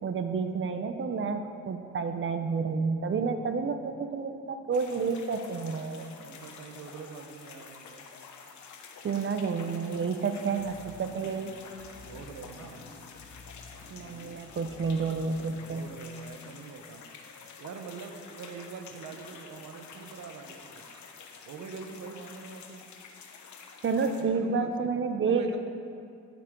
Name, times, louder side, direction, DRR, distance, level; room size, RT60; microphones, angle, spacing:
voice 1, 0.0-6.1 9.0-11.5 13.9-15.9 23.8-25.6, right 5 dB, 40° right, 8 dB, 0.7 m, -30 dB
sound 1, 4.7-24.2, left 5 dB, 70° left, 1.1 m, -49 dB
voice 2, 6.2-8.0 12.1-12.8 15.5-17.0 17.6-20.9 21.5-22.8 24.2-24.9 25.3-25.6, right 5 dB, 70° right, 6 dB, 1.1 m, -44 dB
sound 2, 10.6-16.0, left 3 dB, 35° left, 1.8 m, -51 dB
14.5 x 8.4 x 3.8 m, 2.4 s
cardioid pair, 90°, 30 cm